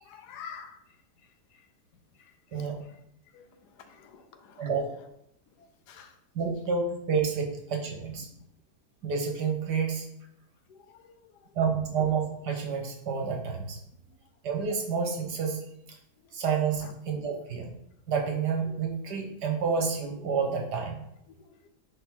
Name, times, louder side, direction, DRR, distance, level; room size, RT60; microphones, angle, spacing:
voice 1, 0.0-1.0 1.2-1.7 2.1-3.0 3.3-4.7 5.5-6.2 8.2-8.3 10.7-11.5 16.2-16.3 16.8-16.9 21.3-21.7, left 7 dB, 75° left, 9 dB, 1.2 m, -50 dB
voice 2, 2.5-2.8 4.6-4.9 6.4-8.3 9.0-10.1 11.6-13.8 14.4-15.6 16.3-17.7 18.1-21.1, right 5 dB, 75° right, 2 dB, 1.9 m, -29 dB
9.9 x 3.8 x 3.8 m, 0.76 s
omnidirectional pair, 1.8 m